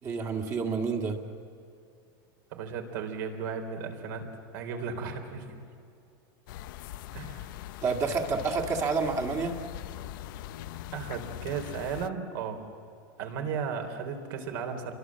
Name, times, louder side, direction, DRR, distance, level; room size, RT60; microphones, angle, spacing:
voice 1, 0.0-1.2 7.8-9.6, right 4 dB, 25° right, 3 dB, 2.0 m, -29 dB
voice 2, 2.5-4.2 4.5-5.6 7.1-7.5 10.9-12.7 13.2-14.9, right 6 dB, 65° right, 4 dB, 3.7 m, -35 dB
sound 1, 6.5-12.1, left 13 dB, 65° left, 0.7 m, -41 dB
27.0 x 23.5 x 7.5 m, 2.5 s
supercardioid pair, 160°, 11 cm